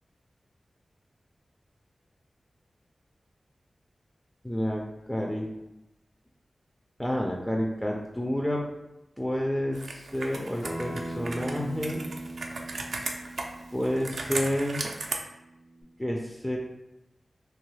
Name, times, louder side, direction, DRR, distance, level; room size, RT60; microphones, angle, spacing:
voice 1, 4.4-5.4 7.0-8.6 9.2-12.0 13.7-14.9 16.0-16.6, equal, 10° left, 0 dB, 0.3 m, -29 dB
Computer keyboard, 9.7-15.2, right 3 dB, 85° right, 0.3 m, -36 dB
Acoustic guitar, 10.6-15.8, right 1 dB, 85° left, 0.7 m, -40 dB
2.7 x 2.3 x 3.1 m, 0.91 s
wide cardioid pair, 65°, 0 cm